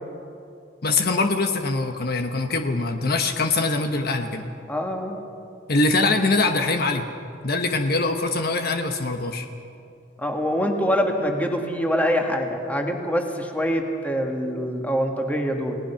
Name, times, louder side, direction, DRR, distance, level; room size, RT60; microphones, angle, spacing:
voice 1, 0.8-4.4 5.7-7.0 7.4-9.5, left 3 dB, 55° left, 5 dB, 1.2 m, -23 dB
voice 2, 4.7-5.2 10.2-15.7, equal, 10° left, 2 dB, 2.0 m, -24 dB
29.5 x 18.5 x 5.8 m, 2.6 s
head